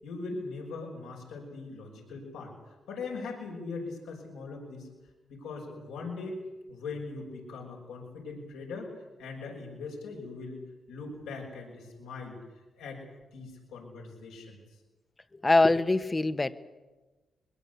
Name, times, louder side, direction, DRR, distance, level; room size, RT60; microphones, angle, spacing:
voice 1, 0.0-2.5 2.9-4.9 5.3-6.4 6.7-8.9 9.2-10.6 10.9-12.4 12.8-13.0 13.3-14.6, left 3 dB, 85° left, 0 dB, 6.2 m, -40 dB
voice 2, 15.3-16.5, left 2 dB, 30° left, 12 dB, 1.4 m, -23 dB
22.5 x 22.0 x 8.3 m, 1.2 s
supercardioid pair, 50°, 0 cm